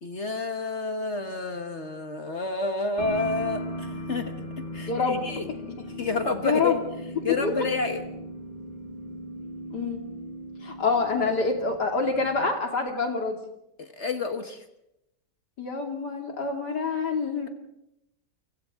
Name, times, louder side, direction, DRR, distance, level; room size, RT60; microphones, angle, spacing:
voice 1, 0.0-5.5 6.0-6.8 7.2-8.0 13.8-14.6, left 3 dB, 45° left, 6 dB, 1.6 m, -30 dB
sound 1, 3.0-12.5, left 1 dB, 30° left, 6.8 m, -37 dB
voice 2, 4.9-5.2 6.4-6.8 7.3-7.5 9.7-10.0 10.6-13.4 15.6-17.5, left 4 dB, 85° left, 2 dB, 3.3 m, -26 dB
29.0 x 25.0 x 3.7 m, 0.84 s
omnidirectional pair, 1.7 m